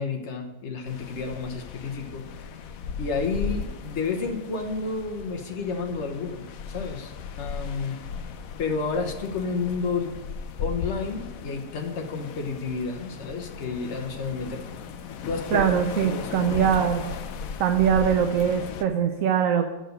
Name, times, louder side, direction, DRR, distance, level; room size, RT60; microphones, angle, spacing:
voice 1, 0.0-2.6 3.0-7.1 7.4-8.0 8.6-10.2 10.6-14.8 15.2-15.7 16.0-16.5, left 4 dB, 45° left, 4 dB, 1.3 m, -31 dB
sound 1, 0.9-18.8, left 6 dB, 65° left, 1.0 m, -37 dB
voice 2, 15.5-17.1 17.6-19.7, right 8 dB, 65° right, 7 dB, 0.9 m, -22 dB
7.7 x 6.5 x 7.8 m, 1.0 s
omnidirectional pair, 1.8 m